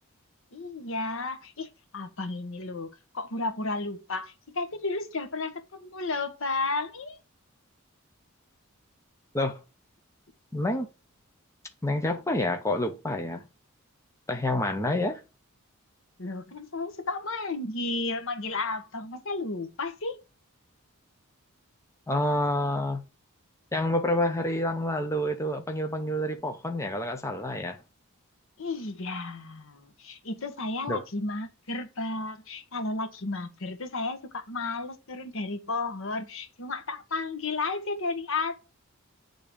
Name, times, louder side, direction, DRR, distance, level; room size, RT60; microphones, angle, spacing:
voice 1, 0.5-7.2 16.2-20.2 28.6-38.6, left 3 dB, 65° left, 1.2 m, -33 dB
voice 2, 10.5-10.9 11.8-13.4 14.3-15.2 22.1-23.0 23.7-27.8 30.9-31.0, left 1 dB, 15° left, 0.8 m, -28 dB
8.7 x 3.8 x 5.2 m
head